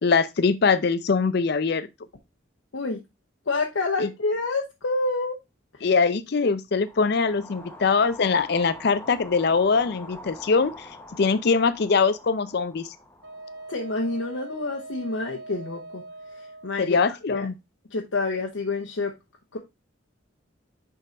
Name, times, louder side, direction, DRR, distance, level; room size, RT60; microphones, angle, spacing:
voice 1, 0.0-1.9 4.0-4.1 5.8-10.9 11.2-12.9 16.8-17.5, left 4 dB, 55° left, 0.5 m, -22 dB
voice 2, 3.5-5.4 13.7-16.0 16.4-17.0 17.3-17.5 17.9-19.1 19.5-19.6, left 3 dB, 80° left, 0.9 m, -28 dB
sound 1, 6.8-15.0, left 2 dB, 10° left, 0.9 m, -45 dB
Wind instrument woodwind instrument, 13.2-16.8, right 2 dB, 60° right, 1.1 m, -41 dB
6.5 x 3.8 x 4.0 m
head